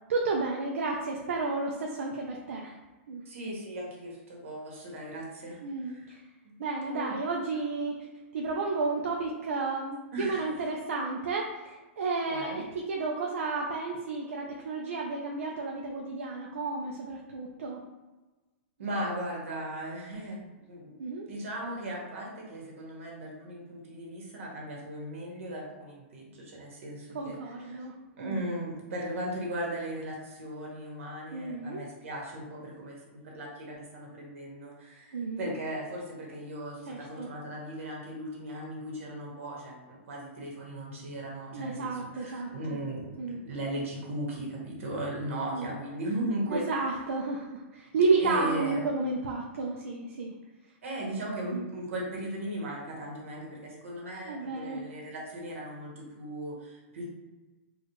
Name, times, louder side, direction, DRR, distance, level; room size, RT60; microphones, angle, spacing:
voice 1, 0.1-2.7 3.1-3.2 5.6-6.2 6.6-8.1 8.3-11.6 12.0-17.8 21.0-21.3 27.1-27.9 28.2-28.4 31.3-31.8 35.1-35.5 36.9-37.3 41.5-42.8 43.2-43.4 45.5-45.7 46.5-50.3 51.5-51.6 54.3-54.8, right 3 dB, 90° right, -1 dB, 0.5 m, -32 dB
voice 2, 3.2-6.1 6.4-7.1 10.1-10.5 12.3-12.6 18.8-20.9 21.3-27.8 28.2-46.9 48.2-48.8 50.8-57.0, right 1 dB, 75° right, -2 dB, 1.4 m, -37 dB
4.2 x 2.4 x 3.0 m, 1.2 s
hypercardioid pair, 180°, 7 cm